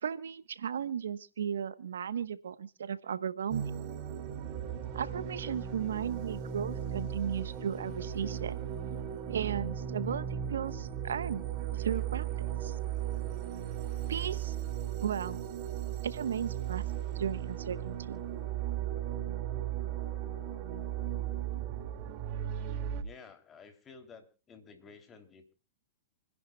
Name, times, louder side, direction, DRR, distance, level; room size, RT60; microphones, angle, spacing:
voice 1, 0.0-3.7 4.9-8.6 9.3-11.4 11.7-12.8 14.1-14.6 15.0-15.4 16.0-16.8 17.1-18.2, right 8 dB, 80° right, 14 dB, 1.1 m, -35 dB
sound 1, 3.5-23.0, right 10 dB, 45° right, 2.3 m, -36 dB
voice 2, 23.0-25.5, left 5 dB, 25° left, 7 dB, 3.0 m, -53 dB
28.5 x 11.0 x 2.3 m, 0.33 s
hypercardioid pair, 120°, 0 cm